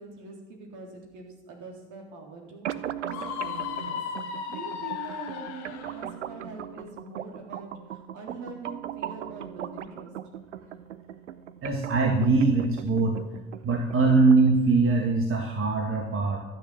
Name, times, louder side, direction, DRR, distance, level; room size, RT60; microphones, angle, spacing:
voice 1, 0.0-4.0 4.5-10.1, right 3 dB, 55° right, 1 dB, 3.7 m, -43 dB
sound 1, 2.6-14.6, right 10 dB, 80° right, 0.7 m, -39 dB
Screaming, 3.1-6.0, left 8 dB, 70° left, 1.5 m, -35 dB
voice 2, 11.6-13.2 13.6-16.4, right 3 dB, 35° right, 2 dB, 1.9 m, -22 dB
13.0 x 9.1 x 7.4 m, 1.1 s
figure-of-eight pair, 55°, 35 cm